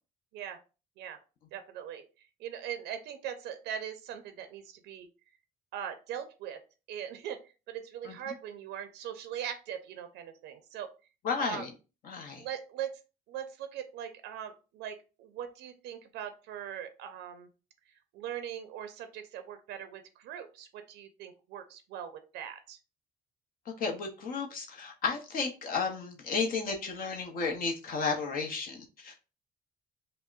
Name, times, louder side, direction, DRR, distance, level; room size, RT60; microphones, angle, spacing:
voice 1, 1.5-2.0 2.4-5.1 5.7-6.6 6.9-7.4 7.7-10.9 11.4-11.6 12.4-13.0 13.3-17.5 18.1-22.8, right 9 dB, 80° right, 8 dB, 0.5 m, -40 dB
voice 2, 11.2-11.7 12.0-12.4 23.8-29.1, left 5 dB, 55° left, 1 dB, 0.7 m, -33 dB
5.4 x 2.0 x 2.4 m, 0.32 s
cardioid pair, 110°, 17 cm